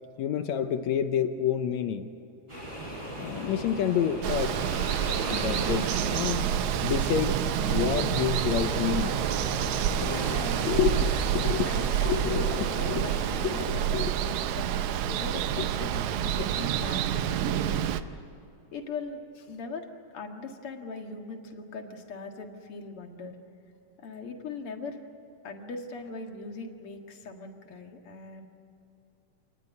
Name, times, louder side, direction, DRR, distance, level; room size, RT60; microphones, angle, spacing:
voice 1, 0.2-2.1 3.2-4.6 5.3-6.5 6.8-7.4 7.7-9.2 10.0-10.1 10.6-11.7 12.1-13.0 13.4-14.1 15.6-15.7, left 9 dB, 70° left, 8 dB, 1.9 m, -29 dB
sound 1, 2.5-13.9, right 1 dB, 15° right, 7.9 m, -38 dB
Water, 4.2-18.0, right 10 dB, 75° right, 2.0 m, -28 dB
Organ, 6.4-15.2, right 3 dB, 15° left, 0.8 m, -42 dB
voice 2, 10.0-10.8 11.7-18.2 18.7-19.9 20.1-23.4 24.0-25.0 25.4-28.5, left 3 dB, 45° left, 3 dB, 2.4 m, -40 dB
27.5 x 19.5 x 9.5 m, 2.7 s
omnidirectional pair, 3.8 m